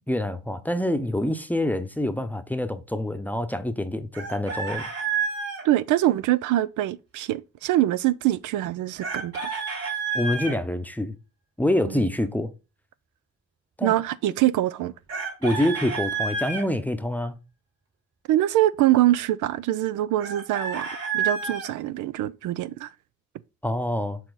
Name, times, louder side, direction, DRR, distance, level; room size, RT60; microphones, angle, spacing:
voice 1, 0.1-4.8 10.1-11.2 11.6-12.5 13.8-14.0 15.4-17.4 23.6-24.2, left 1 dB, 5° left, 0.8 m, -26 dB
Chicken rooster, 4.1-5.6 9.0-10.6 15.1-16.6 20.2-21.7, right 5 dB, 55° right, 4.5 m, -29 dB
voice 2, 5.6-9.5 11.8-12.0 13.8-14.9 18.3-20.9 21.1-22.9, right 14 dB, 85° right, 0.5 m, -24 dB
6.9 x 4.3 x 4.0 m
cardioid pair, 90°, 30 cm